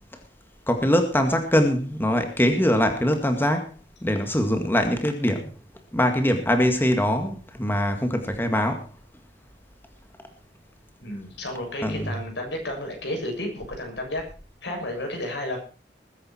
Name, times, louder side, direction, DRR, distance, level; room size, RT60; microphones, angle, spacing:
voice 1, 0.7-5.5 5.9-8.8 11.8-12.1, equal, 15° left, 2.0 m, -23 dB
voice 2, 11.0-14.2 14.6-15.6, left 1 dB, 80° left, 7.1 m, -32 dB
20.5 x 10.5 x 4.5 m
head